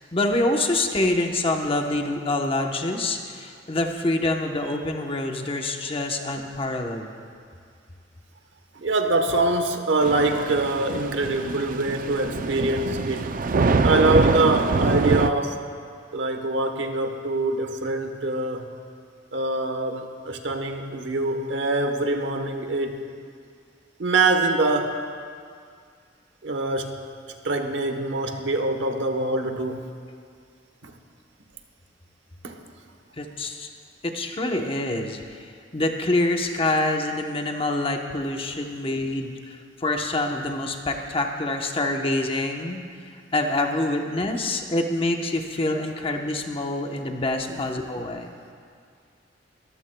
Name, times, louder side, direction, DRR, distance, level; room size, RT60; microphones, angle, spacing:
voice 1, 0.1-7.1 33.2-33.7 34.0-42.8 43.3-48.4, left 2 dB, 30° left, 3 dB, 0.9 m, -26 dB
voice 2, 1.5-1.9 4.6-4.8 6.4-6.5 8.7-13.4 13.8-15.6 16.1-18.7 19.3-23.0 24.0-25.0 26.4-27.0 27.4-29.9 30.8-30.9 32.4-32.6 47.5-47.7, right 2 dB, 70° right, 5 dB, 1.0 m, -24 dB
Thunder / Rain, 10.0-15.3, right 3 dB, 50° right, 0.4 m, -24 dB
22.5 x 14.0 x 2.2 m, 2.2 s
head